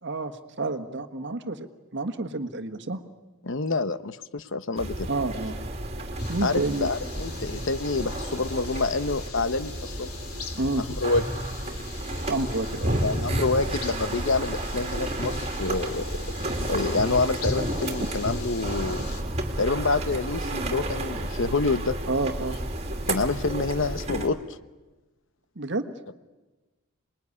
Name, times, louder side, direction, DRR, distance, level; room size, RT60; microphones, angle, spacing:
voice 1, 0.0-3.0 5.1-5.6 6.3-6.9 10.5-10.9 12.3-13.1 18.0-18.1 22.1-22.6 25.5-25.9, right 2 dB, 55° right, 9 dB, 1.5 m, -29 dB
voice 2, 3.4-5.1 6.4-10.1 10.8-11.2 13.0-16.2 16.7-19.1 19.6-22.0 23.1-24.4, left 3 dB, 60° left, 13 dB, 0.9 m, -27 dB
sound 1, 4.8-24.3, right 1 dB, 30° right, 2.7 m, -31 dB
sound 2, 6.2-19.2, left 6 dB, 85° left, 3.1 m, -43 dB
27.0 x 21.0 x 9.8 m, 1.2 s
head